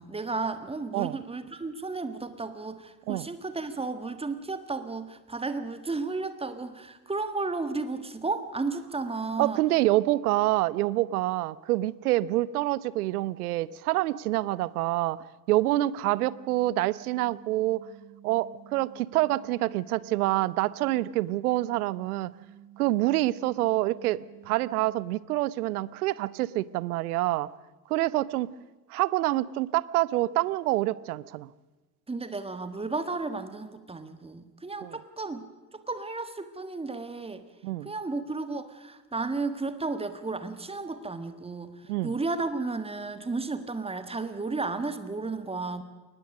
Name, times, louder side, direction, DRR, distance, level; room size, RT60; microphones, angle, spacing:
voice 1, 0.0-9.6 32.1-35.4 35.7-37.4 37.8-45.8, right 3 dB, 10° right, 11 dB, 1.5 m, -33 dB
voice 2, 9.4-17.9 18.2-22.3 22.8-27.5 27.9-28.5 28.9-31.5 34.8-35.0 37.6-37.9 41.9-42.1, right 16 dB, 65° right, 21 dB, 0.7 m, -27 dB
sound 1, 16.2-24.9, right 10 dB, 85° left, 5.8 m, -52 dB
22.0 x 19.5 x 6.3 m, 1.2 s
figure-of-eight pair, 65°, 50 cm